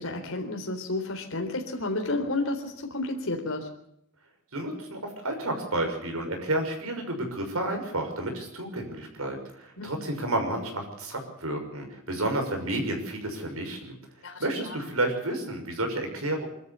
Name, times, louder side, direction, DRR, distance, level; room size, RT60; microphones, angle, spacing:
voice 1, 0.0-3.7 9.8-9.9 14.2-14.4, left 2 dB, 65° left, 3 dB, 3.9 m, -31 dB
voice 2, 4.5-13.9 14.4-16.5, right 1 dB, 75° right, 4 dB, 6.3 m, -31 dB
24.5 x 13.5 x 8.2 m, 0.74 s
head